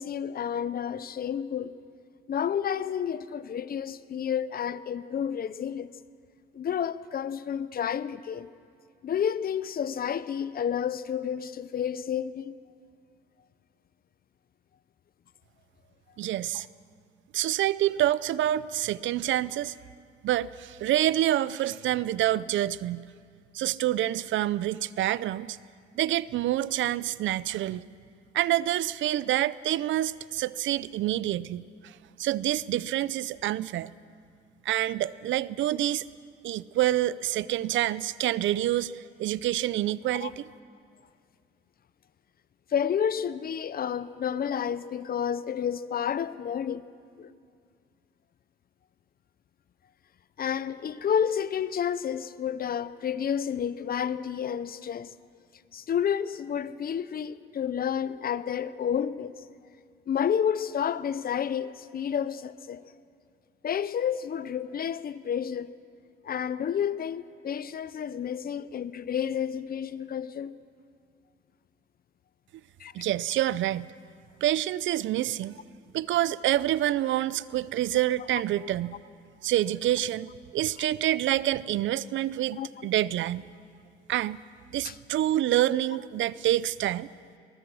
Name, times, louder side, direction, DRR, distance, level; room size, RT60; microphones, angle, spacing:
voice 1, 0.0-1.7 2.3-5.9 6.5-8.5 9.0-12.5 40.1-40.3 42.7-46.8 47.2-47.3 50.4-55.1 55.7-59.4 60.1-62.8 63.6-65.7 66.2-70.5 72.8-72.9 80.8-80.9 82.6-82.9 84.8-85.0, left 8 dB, 50° left, 0.7 m, -30 dB
voice 2, 16.2-16.7 17.3-19.8 20.2-23.1 23.5-25.6 26.0-27.9 28.3-33.9 34.6-36.1 36.4-40.4 72.9-73.9 74.4-75.6 75.9-79.0 79.4-83.4 84.1-84.4 84.7-87.1, right 13 dB, 75° right, 0.5 m, -27 dB
21.5 x 19.5 x 6.2 m
cardioid pair, 90°, 20 cm